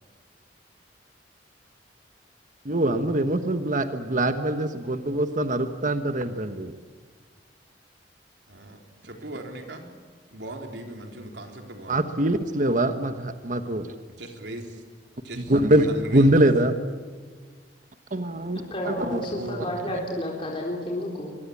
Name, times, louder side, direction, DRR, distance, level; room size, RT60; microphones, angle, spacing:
voice 1, 2.6-6.8 11.9-13.9 15.5-15.9 16.1-16.7 18.1-18.6 18.8-19.2, right 1 dB, 45° right, 8 dB, 1.4 m, -23 dB
voice 2, 8.5-9.9 10.3-12.1 14.1-14.8 15.2-16.6 19.4-19.7, right 1 dB, 75° right, 3 dB, 3.8 m, -39 dB
voice 3, 18.5-21.4, left 1 dB, 30° left, -1 dB, 3.9 m, -31 dB
23.5 x 23.5 x 8.6 m, 1.5 s
head